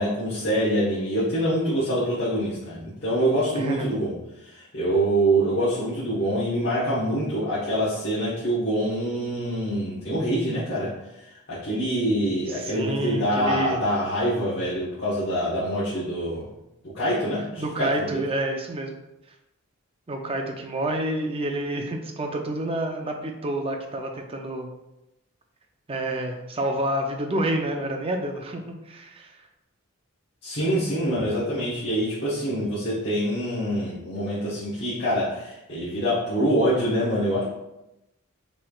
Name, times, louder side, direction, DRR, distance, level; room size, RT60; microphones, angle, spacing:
voice 1, 0.0-4.2 4.4-10.9 11.5-16.5 16.9-18.2 30.4-37.5, right 1 dB, 50° left, -11 dB, 1.2 m, -25 dB
voice 2, 3.5-3.9 12.5-13.8 17.6-18.9 20.1-24.7 25.9-29.4, right 1 dB, 25° right, 3 dB, 0.5 m, -28 dB
5.8 x 3.2 x 2.4 m, 0.91 s
head